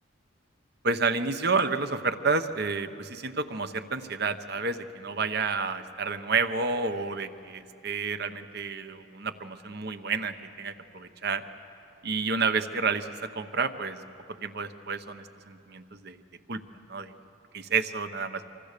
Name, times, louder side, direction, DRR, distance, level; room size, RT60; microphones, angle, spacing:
voice 1, 0.8-11.4 12.0-14.0 14.4-16.2 16.5-16.6 16.9-17.1 17.5-18.4, right 4 dB, 55° right, 10 dB, 1.0 m, -30 dB
26.0 x 24.5 x 6.8 m, 2.6 s
head